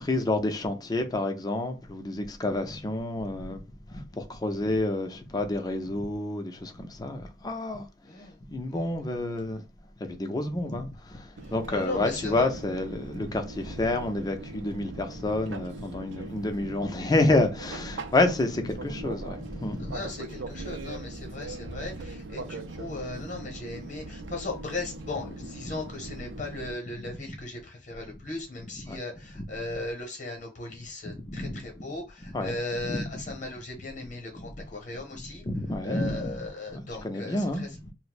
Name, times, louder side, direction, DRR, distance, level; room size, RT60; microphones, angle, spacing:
voice 1, 0.0-3.6 3.9-7.9 8.5-9.6 10.0-20.0 28.9-29.0 29.4-29.5 31.1-31.9 32.3-32.6 32.8-33.0 34.3-34.5 35.1-36.4 36.7-37.9, left 2 dB, 20° left, 0.4 m, -29 dB
voice 2, 8.1-8.4 8.7-8.8 11.4-12.5 13.1-13.2 19.8-35.5 35.8-37.8, left 2 dB, 45° left, 0.9 m, -37 dB
Fixed-wing aircraft airplane, 11.4-26.7, right 2 dB, 80° right, 0.5 m, -40 dB
2.6 x 2.1 x 4.0 m
head